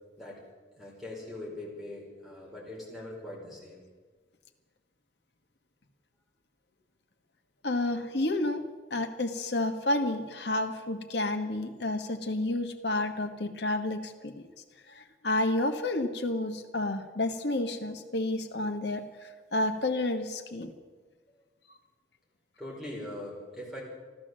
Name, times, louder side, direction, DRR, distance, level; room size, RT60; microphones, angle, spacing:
voice 1, 0.8-3.8 22.6-23.8, left 1 dB, ahead, -4 dB, 4.7 m, -41 dB
voice 2, 7.6-8.6 8.9-14.4 14.9-20.7, left 2 dB, 65° left, 6 dB, 1.4 m, -30 dB
14.5 x 12.0 x 7.5 m, 1.4 s
head